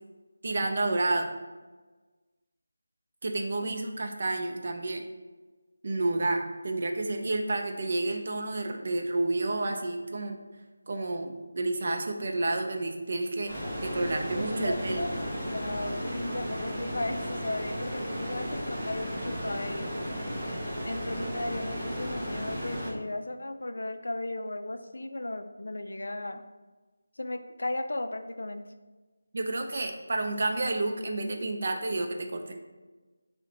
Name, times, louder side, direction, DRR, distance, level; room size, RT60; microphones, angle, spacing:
voice 1, 0.4-1.3 3.2-5.0 5.8-10.4 10.9-13.5 13.8-15.1 29.3-32.5, right 2 dB, 45° right, 4 dB, 0.4 m, -30 dB
sound 1, 13.5-22.9, equal, 10° right, 0.8 m, -34 dB
voice 2, 14.3-19.9 20.8-26.4 27.2-28.7, left 2 dB, 75° left, 8 dB, 0.3 m, -36 dB
5.4 x 2.1 x 2.7 m, 1.3 s
figure-of-eight pair, 170°, 0 cm